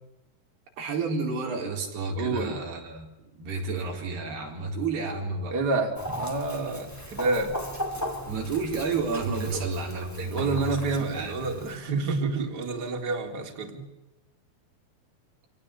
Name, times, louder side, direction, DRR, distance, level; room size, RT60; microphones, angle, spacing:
voice 1, 0.8-3.1 3.4-5.6 8.3-11.5, right 4 dB, 80° right, 1 dB, 6.3 m, -31 dB
voice 2, 2.2-2.6 5.5-7.6 9.4-9.7 10.2-13.8, right 3 dB, 25° right, 2 dB, 3.8 m, -29 dB
Chicken rooster, 6.0-11.8, equal, 5° left, 3.1 m, -37 dB
27.0 x 18.5 x 8.5 m, 0.98 s
omnidirectional pair, 4.6 m